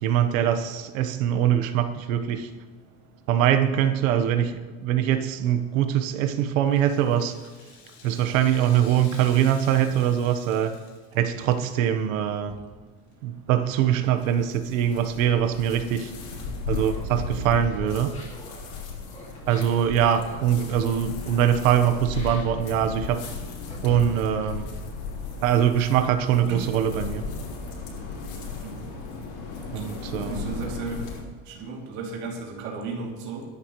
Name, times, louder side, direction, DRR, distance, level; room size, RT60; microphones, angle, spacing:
voice 1, 0.0-2.5 3.3-7.4 8.0-10.7 11.1-12.5 13.2-16.1 16.7-18.1 19.5-23.2 23.8-24.7 25.4-27.2 29.7-30.6, right 10 dB, 70° right, 8 dB, 1.3 m, -23 dB
Rattle (instrument), 6.6-11.9 12.2-12.3 13.1-13.2, left 5 dB, 55° left, 3.7 m, -49 dB
sound 1, 13.5-31.2, left 4 dB, 80° left, 5.3 m, -36 dB
Laughter, 16.7-24.8, left 2 dB, 15° left, 2.3 m, -47 dB
voice 2, 30.3-31.0 31.5-33.4, right 4 dB, 45° right, -1 dB, 2.9 m, -34 dB
23.0 x 11.0 x 3.2 m, 1.4 s
cardioid pair, 180°, 42 cm